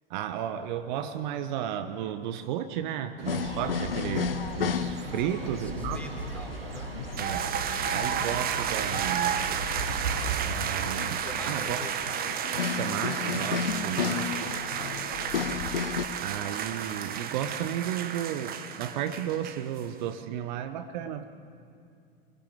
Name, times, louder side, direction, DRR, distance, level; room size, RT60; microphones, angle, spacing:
voice 1, 0.1-6.0 7.2-7.5 7.9-9.4 10.4-11.8 12.6-14.5 16.2-21.3, right 10 dB, 50° right, 9 dB, 1.4 m, -33 dB
sound 1, 3.2-10.5, right 5 dB, 80° right, 1.9 m, -37 dB
sound 2, 3.3-16.1, left 7 dB, 70° left, 1.3 m, -34 dB
voice 2, 5.2-6.9 11.2-11.9 13.8-15.4, left 2 dB, 5° left, 1 dB, 4.5 m, -47 dB
sound 3, 7.2-19.9, right 8 dB, 30° right, 1.8 m, -32 dB
28.0 x 22.0 x 7.7 m, 2.5 s
figure-of-eight pair, 85°, 29 cm